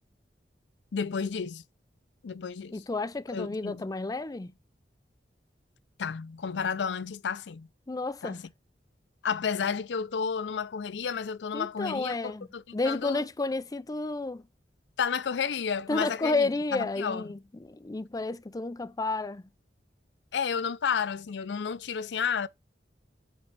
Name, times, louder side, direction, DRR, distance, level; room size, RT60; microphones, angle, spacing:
voice 1, 0.9-1.6 2.2-2.8 3.3-3.9 6.0-7.7 8.2-8.4 9.2-13.2 15.0-17.3 20.3-22.5, left 6 dB, 80° left, 0.5 m, -31 dB
voice 2, 2.7-4.5 7.9-8.4 11.5-12.5 12.7-14.4 15.9-19.4, left 3 dB, 20° left, 0.4 m, -31 dB
8.0 x 4.3 x 6.1 m
head